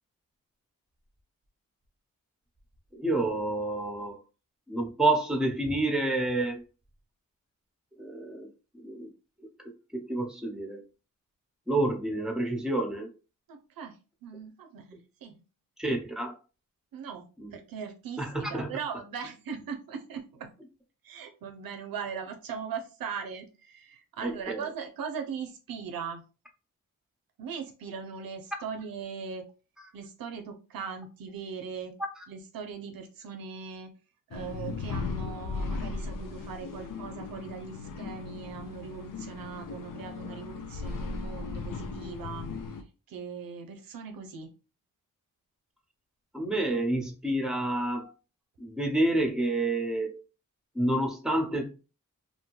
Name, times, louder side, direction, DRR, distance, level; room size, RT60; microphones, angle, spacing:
voice 1, 2.9-4.2 4.7-6.6 8.0-8.5 8.8-9.1 9.6-10.8 11.7-13.1 15.8-16.3 17.4-17.5 18.2-18.7 24.2-24.6 32.2-32.3 46.3-48.1 48.6-50.2 50.7-51.7, right 2 dB, ahead, 3 dB, 0.9 m, -29 dB
voice 2, 13.5-14.0 14.2-15.4 16.9-20.5 21.0-26.2 27.4-29.5 29.9-31.9 32.3-33.9 34.3-42.5 43.1-44.5, right 6 dB, 85° right, 6 dB, 0.5 m, -39 dB
sound 1, 34.3-42.8, left 4 dB, 70° left, 0.6 m, -37 dB
2.6 x 2.2 x 3.0 m, 0.33 s
cardioid pair, 40°, 33 cm